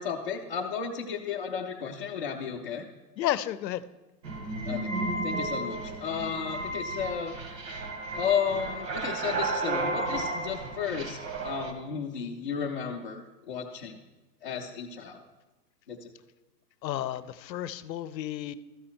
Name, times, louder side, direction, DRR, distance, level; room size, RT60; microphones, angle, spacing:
voice 1, 0.0-2.8 4.6-4.9 5.2-7.3 8.1-14.0 14.4-15.2 15.9-16.1, left 7 dB, 35° left, -4 dB, 0.4 m, -33 dB
voice 2, 3.2-3.8 16.8-18.5, left 12 dB, 85° left, 16 dB, 0.7 m, -32 dB
sound 1, 4.2-11.7, right 2 dB, 75° right, 1.6 m, -33 dB
13.5 x 5.5 x 4.3 m, 1.1 s
hypercardioid pair, 170°, 49 cm